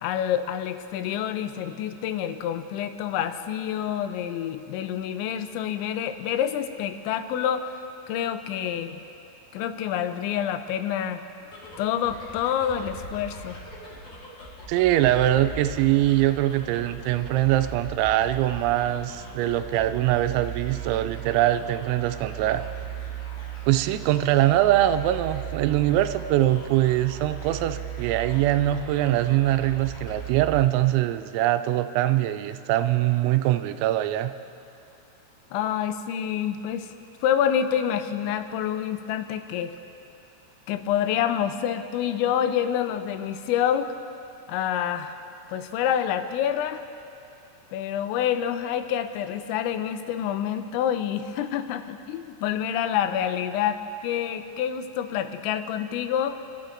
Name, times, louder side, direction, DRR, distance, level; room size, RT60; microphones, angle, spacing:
voice 1, 0.0-7.7 8.1-9.0 9.5-11.2 11.8-13.6 35.5-36.9 37.2-39.7 40.7-43.9 44.5-45.2 45.5-46.8 47.7-56.4, left 9 dB, 90° left, 9 dB, 2.9 m, -27 dB
sound 1, 11.5-31.2, right 7 dB, 45° left, 4.4 m, -38 dB
voice 2, 14.7-22.6 23.7-34.3, right 13 dB, 90° right, 10 dB, 2.9 m, -23 dB
28.5 x 12.5 x 2.6 m, 2.7 s
omnidirectional pair, 5.2 m